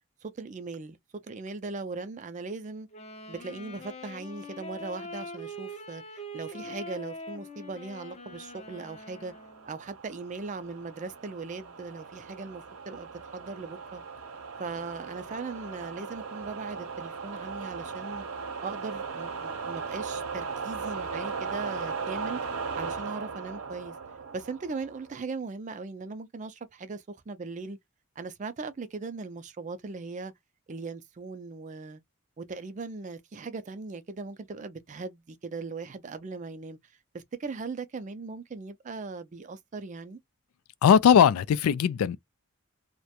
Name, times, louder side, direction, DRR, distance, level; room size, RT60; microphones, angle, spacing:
voice 1, 0.2-1.0 1.2-2.9 3.3-6.0 6.3-9.3 9.7-14.0 14.6-18.2 18.6-23.9 24.3-27.8 28.2-30.3 30.7-32.0 32.4-40.2, right 4 dB, 35° right, 0.4 m, -39 dB
Wind instrument woodwind instrument, 2.9-9.8, equal, 30° left, 0.5 m, -43 dB
sound 1, 8.7-25.2, right 5 dB, 85° right, 0.6 m, -38 dB
voice 2, 40.8-42.2, left 8 dB, 90° left, 0.3 m, -19 dB
2.4 x 2.1 x 2.7 m
head